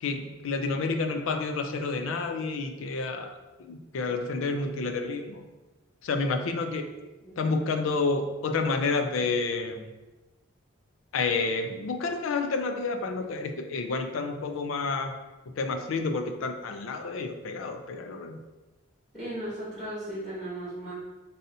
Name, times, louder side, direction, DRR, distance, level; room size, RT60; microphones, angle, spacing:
voice 1, 0.0-5.4 6.0-6.9 7.4-9.9 11.1-15.1 15.6-18.4, left 3 dB, 70° left, 6 dB, 0.4 m, -29 dB
voice 2, 7.2-7.7 19.1-20.9, right 1 dB, ahead, -11 dB, 1.4 m, -37 dB
5.3 x 2.7 x 2.6 m, 1.1 s
head